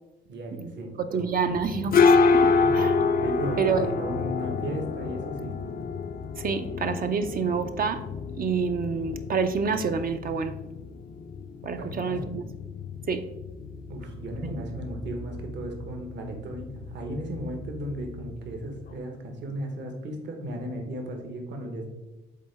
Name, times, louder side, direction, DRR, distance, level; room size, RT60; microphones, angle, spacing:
voice 1, 0.3-1.3 2.6-2.7 3.2-5.5 11.8-12.3 13.9-21.9, right 1 dB, 65° right, 3 dB, 1.3 m, -35 dB
voice 2, 1.1-2.9 3.6-3.8 6.4-8.0 8.4-10.6 11.6-12.5 13.1-13.3 14.4-14.6, right 5 dB, 45° right, 8 dB, 0.5 m, -28 dB
sound 1, 1.5-19.0, left 4 dB, 45° left, 0.5 m, -28 dB
7.5 x 3.8 x 3.4 m, 1.0 s
cardioid pair, 90°, 20 cm